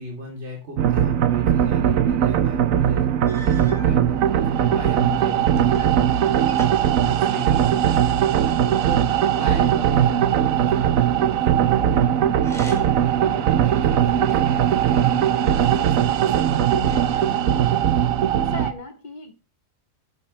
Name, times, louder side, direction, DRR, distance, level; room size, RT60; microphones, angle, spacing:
voice 1, 0.0-8.5 8.8-9.1 9.3-17.7, equal, 55° right, -1 dB, 3.7 m, -37 dB
sound 1, 0.8-18.7, right 10 dB, 80° right, 1.2 m, -19 dB
sound 2, 2.7-2.8 3.2-4.0 4.8-6.0 6.3-7.8 12.3-13.1 13.6-14.6 15.4-16.2 16.9-17.6, equal, ahead, 5.0 m, -42 dB
voice 2, 6.5-7.1 18.3-19.3, left 3 dB, 35° left, 5 dB, 2.3 m, -38 dB
13.5 x 11.5 x 3.3 m, 0.30 s
omnidirectional pair, 1.4 m